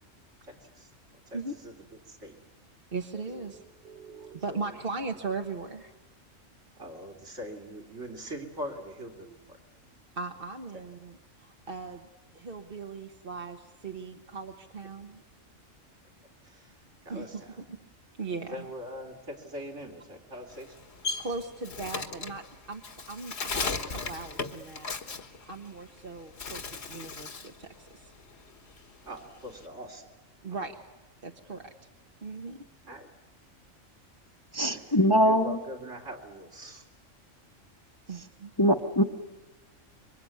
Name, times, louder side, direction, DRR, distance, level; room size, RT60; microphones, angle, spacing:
voice 1, 0.4-0.9 1.3-1.7 2.0-2.4 3.4-3.6 4.2-4.8 6.8-9.6 10.7-10.8 16.4-17.6 18.3-20.8 29.0-30.1 32.8-33.1 34.6-36.9, equal, 65° right, 2 dB, 3.7 m, -42 dB
voice 2, 2.9-5.9 10.2-12.1 12.3-15.2 17.1-17.4 17.7-17.9 18.2-18.6 21.2-22.8 23.1-24.9 25.5-28.1 30.4-30.8 31.2-31.7 32.2-32.7 38.1-38.5, right 4 dB, 45° right, 4 dB, 1.3 m, -38 dB
Bird, 20.5-26.0 26.3-27.6 27.9-29.6, left 4 dB, 55° left, 1.7 m, -36 dB
voice 3, 34.5-35.6 38.6-39.0, equal, 20° left, 5 dB, 1.1 m, -22 dB
26.0 x 24.0 x 9.4 m, 1.1 s
omnidirectional pair, 1.3 m